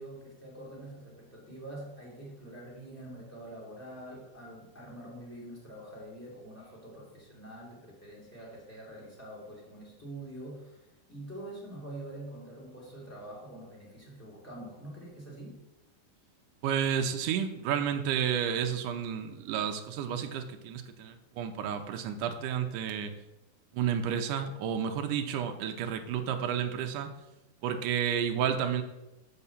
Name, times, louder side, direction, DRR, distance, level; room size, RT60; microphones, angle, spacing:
voice 1, 0.0-15.6, right 1 dB, 5° left, -5 dB, 2.3 m, -45 dB
voice 2, 16.6-23.1 23.7-27.1 27.6-28.8, right 8 dB, 75° right, 6 dB, 2.1 m, -31 dB
6.9 x 5.9 x 7.1 m, 0.97 s
omnidirectional pair, 4.2 m